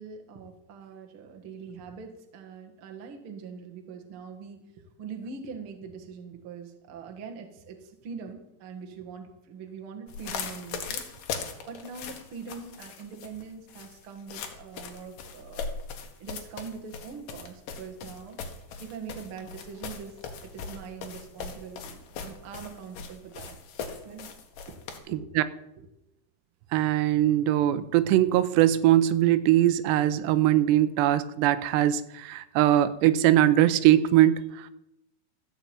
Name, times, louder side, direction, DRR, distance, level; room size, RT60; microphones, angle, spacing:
voice 1, 0.0-15.6 16.2-18.4 18.8-23.6 24.0-24.3 24.7-24.8 25.1-25.3, right 5 dB, 55° right, 3 dB, 1.5 m, -43 dB
sound 1, 10.1-25.0, left 5 dB, 60° left, 2.7 m, -39 dB
voice 2, 26.7-34.7, right 13 dB, 90° right, 13 dB, 2.8 m, -21 dB
14.5 x 6.0 x 8.7 m, 0.86 s
omnidirectional pair, 4.9 m